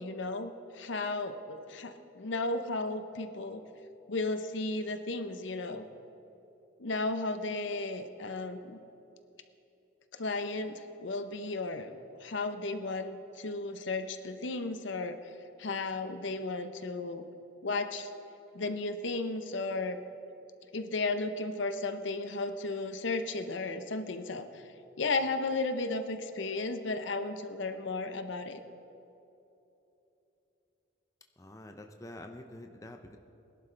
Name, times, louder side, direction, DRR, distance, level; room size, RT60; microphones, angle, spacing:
voice 1, 0.0-3.6 4.1-5.9 6.8-8.8 10.1-15.3 15.6-17.2 17.6-18.1 18.5-20.0 20.7-24.6 25.0-28.6, left 3 dB, 70° left, 9 dB, 0.7 m, -34 dB
voice 2, 31.4-33.2, left 1 dB, 15° left, 5 dB, 0.5 m, -47 dB
21.0 x 11.0 x 3.3 m, 2.9 s
head